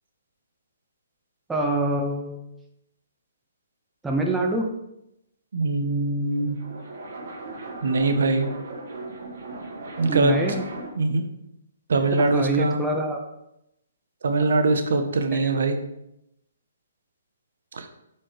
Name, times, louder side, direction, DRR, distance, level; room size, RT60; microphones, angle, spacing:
voice 1, 1.5-2.5 4.0-4.7 10.1-10.6 12.1-13.2 15.3-15.4, right 1 dB, 5° right, 1 dB, 0.6 m, -25 dB
voice 2, 5.5-6.6 7.8-8.5 10.0-10.3 11.0-11.3 11.9-12.8 14.2-15.8 17.7-17.9, right 3 dB, 75° right, 7 dB, 0.9 m, -22 dB
sound 1, 6.2-11.1, right 2 dB, 55° right, 1.6 m, -37 dB
7.4 x 4.6 x 3.2 m, 0.83 s
hypercardioid pair, 160°, 0 cm